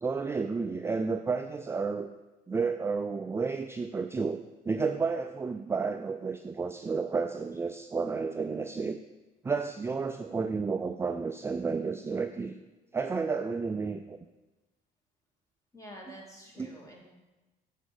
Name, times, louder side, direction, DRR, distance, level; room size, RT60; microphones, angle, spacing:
voice 1, 0.0-2.1 2.5-9.0 9.4-12.6 12.9-14.2 16.6-16.7, right 4 dB, 15° right, 7 dB, 0.3 m, -31 dB
voice 2, 15.7-17.0, equal, 20° left, -1 dB, 2.1 m, -48 dB
7.2 x 5.0 x 6.5 m, 1.1 s
cardioid pair, 110°, 17 cm